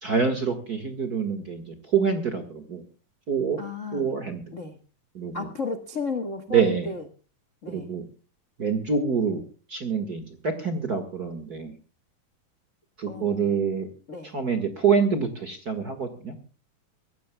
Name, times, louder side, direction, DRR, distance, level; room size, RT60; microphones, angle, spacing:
voice 1, 0.0-2.8 3.3-3.6 3.9-4.4 5.1-5.5 6.5-6.9 7.7-8.0 8.6-9.4 9.7-11.7 13.0-13.9 14.2-16.4, right 6 dB, 40° right, 8 dB, 1.5 m, -26 dB
voice 2, 3.6-4.1 4.5-4.8 5.3-7.0 7.6-7.9 13.1-13.5 14.1-14.3, left 4 dB, 50° left, 7 dB, 0.8 m, -33 dB
24.0 x 16.0 x 2.3 m, 0.37 s
omnidirectional pair, 4.0 m